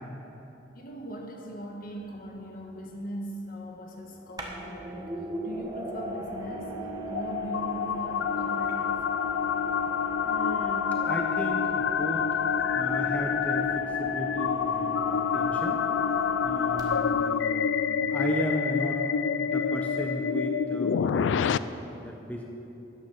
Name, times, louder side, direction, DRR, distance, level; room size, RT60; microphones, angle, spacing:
voice 1, 0.7-5.1 5.4-6.7 7.1-9.3 10.9-11.3, right 1 dB, 50° left, 1 dB, 1.5 m, -40 dB
sound 1, 1.9-2.0 4.4-17.3, equal, 20° right, 1.3 m, -38 dB
sound 2, 6.5-21.6, left 7 dB, 80° left, 0.3 m, -28 dB
voice 2, 10.2-12.3 12.7-15.8 16.4-19.0 19.5-22.5, equal, 10° left, 1 dB, 0.7 m, -36 dB
13.0 x 9.6 x 5.8 m, 3.0 s
head